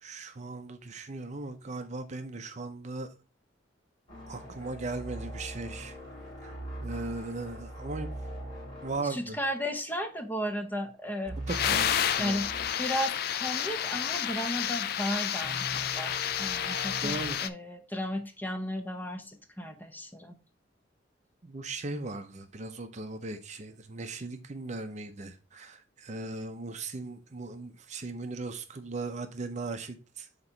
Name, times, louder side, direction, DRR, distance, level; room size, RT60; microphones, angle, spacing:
voice 1, 0.0-3.1 4.3-6.0 6.4-6.5 6.8-8.1 8.8-9.4 11.4-12.4 17.0-17.4 21.4-30.3, right 3 dB, 35° right, 0.6 m, -38 dB
sound 1, 4.1-10.2 10.4-10.7 11.2-12.7 13.2-13.3 15.4-17.3, equal, 25° left, 3.2 m, -41 dB
voice 2, 9.1-11.3 11.7-11.9 12.2-12.5 12.8-20.4, equal, 10° left, 0.7 m, -34 dB
sound 2, 11.5-17.5, left 9 dB, 55° left, 0.4 m, -30 dB
7.8 x 3.0 x 4.4 m
head